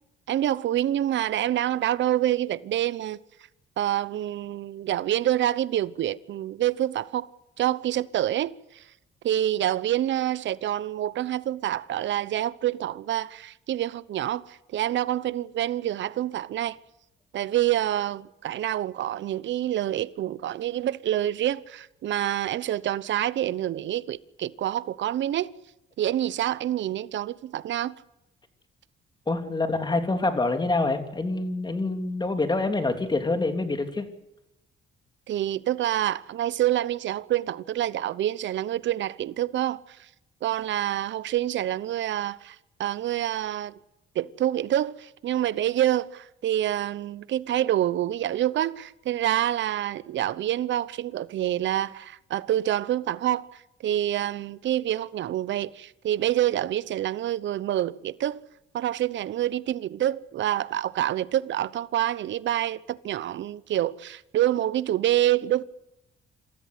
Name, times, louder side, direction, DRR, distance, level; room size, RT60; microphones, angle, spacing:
voice 1, 0.3-3.2 3.8-7.3 7.6-8.8 9.2-16.8 17.3-25.5 26.0-28.0 35.3-40.0 40.4-43.7 44.1-53.5 53.8-58.4 58.7-65.6, right 12 dB, 70° right, 0.9 m, -27 dB
voice 2, 29.3-34.0, left 2 dB, 20° left, 3.2 m, -26 dB
27.0 x 14.0 x 8.3 m
cardioid pair, 90°, 20 cm